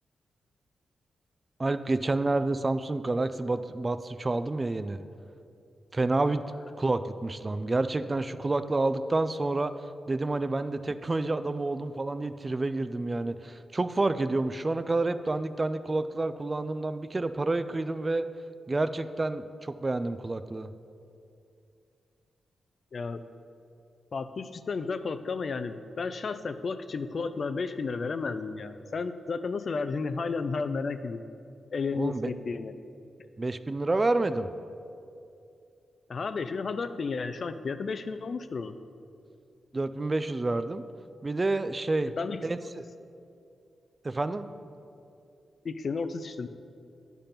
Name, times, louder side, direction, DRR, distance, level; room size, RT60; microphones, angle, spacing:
voice 1, 1.6-5.0 5.9-6.4 6.8-9.7 10.1-18.3 18.7-20.7 32.0-32.3 33.4-34.5 39.7-40.8 41.2-42.1 42.4-42.9 44.0-44.5, right 2 dB, 30° right, 12 dB, 0.3 m, -29 dB
voice 2, 22.9-23.2 24.1-31.2 31.7-32.7 36.1-38.8 42.2-42.4 45.6-46.5, left 4 dB, 55° left, 11 dB, 0.4 m, -32 dB
10.0 x 3.5 x 5.7 m, 2.5 s
cardioid pair, 65°, 0 cm